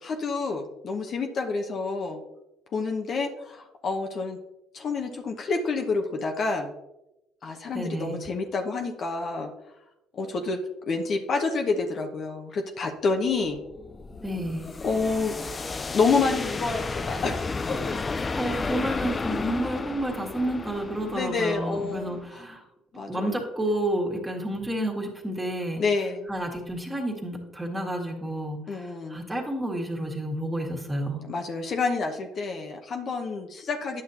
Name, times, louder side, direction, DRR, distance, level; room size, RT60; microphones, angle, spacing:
voice 1, 0.0-2.2 2.7-4.4 4.7-6.7 7.4-9.5 10.1-10.6 10.9-13.6 14.8-15.4 15.9-18.0 21.0-22.2 22.9-23.5 25.8-26.3 28.7-29.2 31.2-34.0, left 4 dB, 50° left, 3 dB, 0.9 m, -28 dB
voice 2, 7.7-8.2 14.2-14.6 18.4-22.6 23.1-25.8 26.3-31.2, right 1 dB, 15° right, 0 dB, 1.9 m, -30 dB
sound 1, 13.3-22.3, left 4 dB, 30° left, 0.4 m, -33 dB
9.8 x 6.4 x 2.8 m, 0.92 s
supercardioid pair, 75°, 0 cm